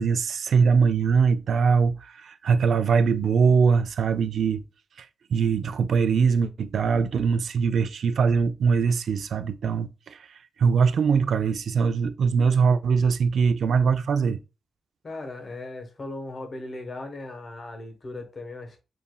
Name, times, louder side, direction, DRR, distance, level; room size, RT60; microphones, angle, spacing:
voice 1, 0.0-4.6 5.0-10.3 10.6-14.4, right 5 dB, 75° right, 0.3 m, -22 dB
voice 2, 15.0-18.8, left 2 dB, 40° left, 1.1 m, -37 dB
7.1 x 2.6 x 2.3 m
wide cardioid pair, 125°, 0 cm